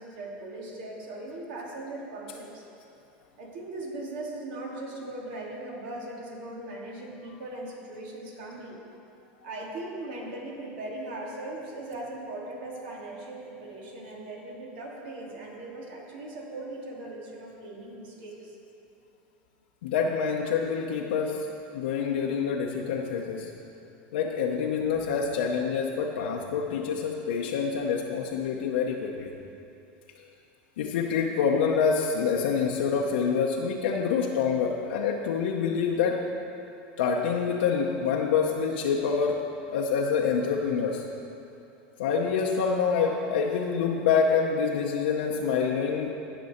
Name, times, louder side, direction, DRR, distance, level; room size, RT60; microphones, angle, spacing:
voice 1, 0.0-2.6 3.4-8.8 9.4-18.6, right 2 dB, 75° right, -2 dB, 2.3 m, -39 dB
voice 2, 19.8-21.5 21.7-23.5 24.1-29.3 30.8-36.3 37.0-39.4 39.7-41.0 42.0-46.1, left 6 dB, 90° left, -1 dB, 0.7 m, -26 dB
16.5 x 6.1 x 4.3 m, 2.7 s
supercardioid pair, 125°, 5 cm